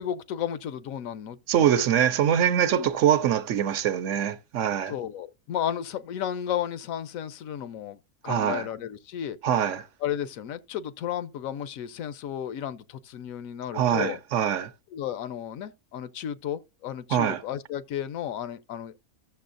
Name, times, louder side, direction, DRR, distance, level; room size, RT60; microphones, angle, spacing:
voice 1, 0.0-1.9 2.8-2.9 4.9-9.4 10.0-14.2 14.9-18.9, left 10 dB, 80° left, 1.0 m, -33 dB
voice 2, 1.5-4.9 8.3-8.7 9.4-9.8 13.7-14.7 17.1-17.4, right 9 dB, 70° right, 0.9 m, -23 dB
14.0 x 6.8 x 2.5 m
omnidirectional pair, 1.4 m